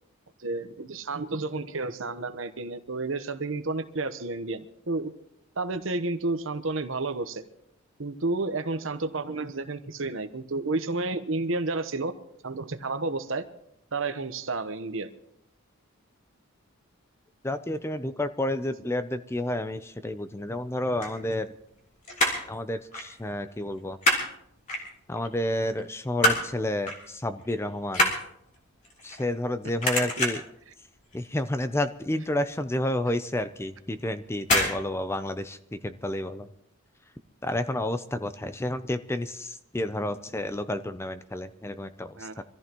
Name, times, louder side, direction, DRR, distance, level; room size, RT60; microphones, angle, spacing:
voice 1, 0.4-5.1 5.6-7.4 8.0-12.1 12.4-13.5 13.9-15.1 30.0-30.4 42.2-42.4, right 3 dB, 65° right, 9 dB, 1.0 m, -31 dB
voice 2, 17.4-21.5 22.5-24.0 25.1-28.1 29.0-30.4 31.1-36.5 37.4-42.4, left 1 dB, 10° left, 11 dB, 0.5 m, -30 dB
sound 1, 20.8-21.8 22.0-22.5 22.9-23.1 23.4-24.3 24.7-25.3 25.7-26.5 26.9-27.1 27.4-29.5 29.8-30.6 31.0-31.3 31.6-31.7 32.0-32.1 32.6-32.7 33.5-33.8 34.4-34.8 35.0-35.1, left 1 dB, 35° left, 3.4 m, -26 dB
25.0 x 14.5 x 3.0 m, 0.76 s
head